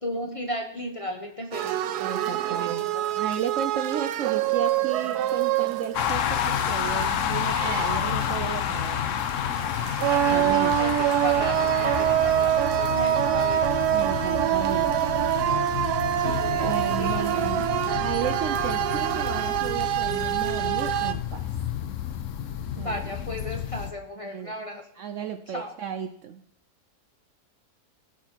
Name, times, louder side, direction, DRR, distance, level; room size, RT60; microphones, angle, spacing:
voice 1, 0.0-1.9 2.4-3.1 10.1-13.7 16.0-17.4 22.7-24.8 25.5-25.7, equal, 25° left, 3 dB, 0.9 m, -35 dB
sound 1, 1.5-21.1, right 12 dB, 85° right, 1.1 m, -26 dB
voice 2, 2.0-2.8 3.2-9.0 10.3-10.9 13.9-15.1 16.5-17.7 18.0-21.5 22.8-23.0 24.2-24.5 25.0-26.4, right 8 dB, 65° right, 9 dB, 0.8 m, -33 dB
sound 2, 5.9-23.9, left 9 dB, 60° left, 1.0 m, -30 dB
16.5 x 5.9 x 4.5 m, 0.67 s
omnidirectional pair, 1.7 m